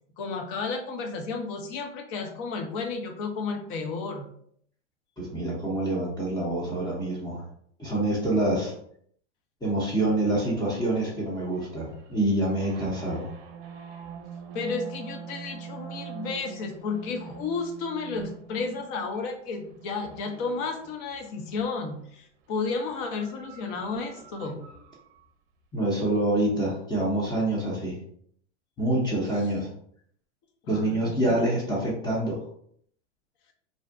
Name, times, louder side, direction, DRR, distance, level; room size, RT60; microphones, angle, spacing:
voice 1, 0.2-4.3 14.5-24.6 30.6-31.4, left 4 dB, 45° left, 4 dB, 0.6 m, -32 dB
voice 2, 5.2-7.4 7.8-8.7 9.6-13.3 25.7-28.0 28.8-29.7 30.7-32.4, right 1 dB, 10° left, -5 dB, 0.6 m, -26 dB
sound 1, 10.0-21.8 22.6-25.3, right 7 dB, 55° right, 0.5 m, -45 dB
2.6 x 2.1 x 2.4 m, 0.64 s
hypercardioid pair, 110°, 36 cm